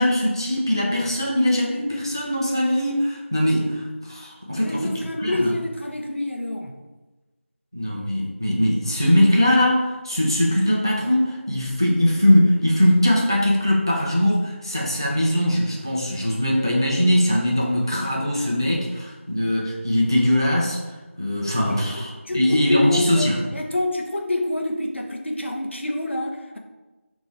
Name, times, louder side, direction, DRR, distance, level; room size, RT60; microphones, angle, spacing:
voice 1, 0.0-4.8 5.2-5.5 7.7-20.8 21.2-23.4, left 1 dB, 20° right, -3 dB, 0.3 m, -21 dB
voice 2, 4.6-6.7 21.7-26.6, left 1 dB, 60° left, 2 dB, 0.6 m, -27 dB
5.4 x 2.5 x 3.2 m, 1.2 s
figure-of-eight pair, 170°, 7 cm